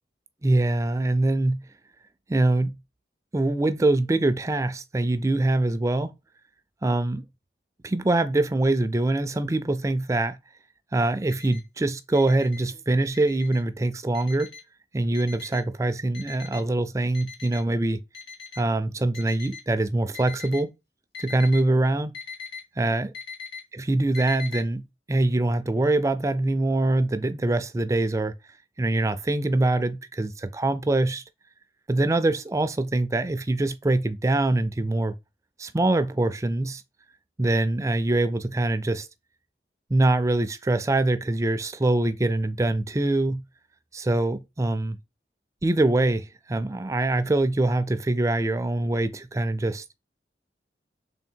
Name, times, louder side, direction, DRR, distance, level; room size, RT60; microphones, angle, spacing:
voice 1, 0.4-1.6 2.3-2.7 3.3-6.1 6.8-7.2 7.8-10.4 10.9-14.5 14.9-18.0 18.6-20.7 21.2-22.1 22.8-23.1 23.7-28.3 28.8-31.2 31.9-35.1 35.6-36.8 37.4-39.1 39.9-43.4 43.9-45.0 45.6-49.8, right 2 dB, 15° right, 0.3 m, -24 dB
Alarm, 11.3-11.6 12.1-12.6 13.1-13.6 14.1-14.6 15.1-15.6 16.1-16.6 17.1-17.6 18.1-18.6 19.1-19.6 20.1-20.6 21.1-21.6 22.1-22.6 23.1-23.6 24.1-24.6, left 6 dB, 65° left, 1.7 m, -40 dB
3.6 x 3.4 x 4.3 m
head